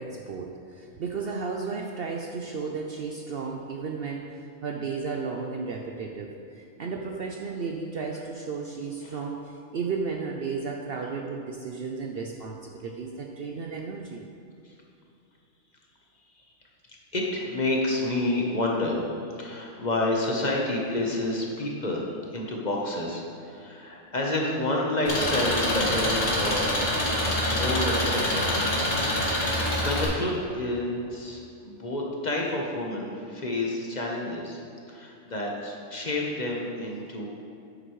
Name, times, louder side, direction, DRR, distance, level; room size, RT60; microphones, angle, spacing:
voice 1, 0.0-14.2, right 4 dB, 60° right, 2 dB, 0.7 m, -34 dB
voice 2, 17.1-22.1 22.3-26.7 27.5-28.5 29.1-34.6 34.9-37.3, left 2 dB, 35° left, -1 dB, 1.1 m, -29 dB
Engine, 25.1-30.1, left 1 dB, 75° left, 2.1 m, -25 dB
10.0 x 7.9 x 3.1 m, 2.6 s
omnidirectional pair, 1.3 m